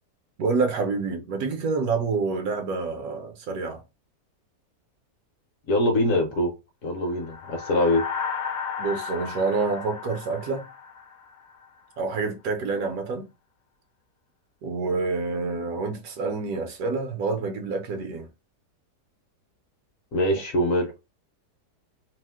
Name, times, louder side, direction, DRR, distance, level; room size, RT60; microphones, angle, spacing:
voice 1, 0.4-3.8 8.8-10.6 12.0-13.3 14.6-18.3, right 4 dB, 70° right, 1.0 m, -27 dB
voice 2, 5.7-6.5 6.8-8.0 20.1-20.9, left 1 dB, 60° left, 1.0 m, -23 dB
sound 1, 7.1-11.7, left 6 dB, 75° left, 1.1 m, -34 dB
2.9 x 2.0 x 3.3 m
omnidirectional pair, 1.8 m